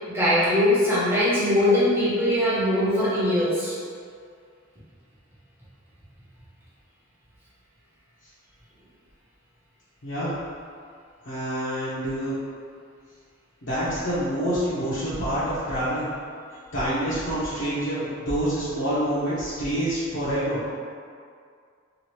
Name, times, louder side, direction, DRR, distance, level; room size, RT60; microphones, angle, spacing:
voice 1, 0.1-3.7, left 1 dB, 10° right, -10 dB, 0.7 m, -21 dB
voice 2, 10.0-10.3 11.2-12.4 13.6-16.1 16.7-20.6, right 1 dB, 60° left, -12 dB, 0.7 m, -27 dB
2.9 x 2.4 x 2.9 m, 2.2 s
head